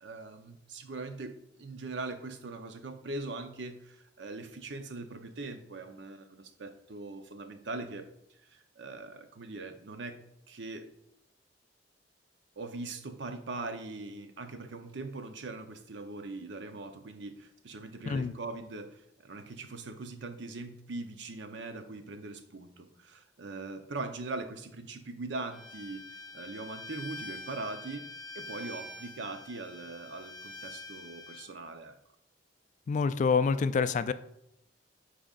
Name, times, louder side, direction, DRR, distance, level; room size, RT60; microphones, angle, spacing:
voice 1, 0.0-8.1 8.4-10.9 12.6-26.0 26.3-28.0 28.3-31.9, right 3 dB, 70° right, 7 dB, 0.7 m, -41 dB
Bowed string instrument, 25.5-31.5, left 2 dB, 20° left, 1.1 m, -45 dB
voice 2, 32.9-34.1, left 5 dB, 40° left, 13 dB, 0.3 m, -27 dB
9.0 x 5.0 x 2.4 m, 0.81 s
head